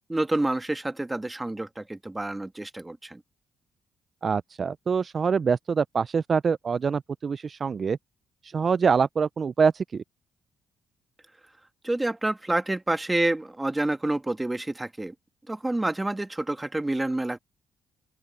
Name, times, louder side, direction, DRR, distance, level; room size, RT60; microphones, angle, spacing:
voice 1, 0.1-3.2 11.8-15.1 15.5-17.4, right 2 dB, 15° right, 1.8 m, -28 dB
voice 2, 4.2-8.0 8.4-10.0, right 5 dB, 40° right, 0.3 m, -25 dB
open air
cardioid pair, 90°, 0 cm